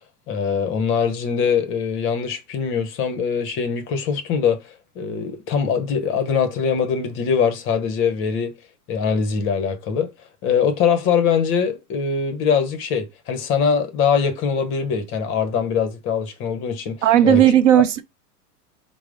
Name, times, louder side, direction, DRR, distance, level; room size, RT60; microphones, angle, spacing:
voice 1, 0.3-8.5 8.9-10.1 10.4-17.4 17.7-17.8, left 6 dB, 25° left, 0.7 m, -22 dB
voice 2, 17.0-18.0, right 11 dB, 50° right, 0.5 m, -14 dB
4.6 x 2.0 x 3.7 m
hypercardioid pair, 115°, 47 cm